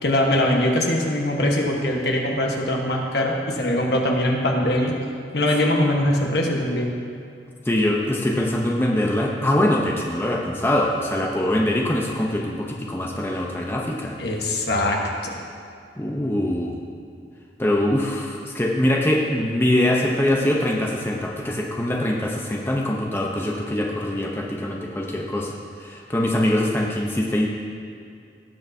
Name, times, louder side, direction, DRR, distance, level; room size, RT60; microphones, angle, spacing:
voice 1, 0.0-5.0 5.3-6.9 14.2-15.4, left 1 dB, 70° left, 0 dB, 1.3 m, -22 dB
voice 2, 7.6-14.1 16.0-16.8 17.6-27.5, left 1 dB, 15° left, -2 dB, 0.8 m, -23 dB
18.0 x 6.6 x 2.8 m, 2.4 s
head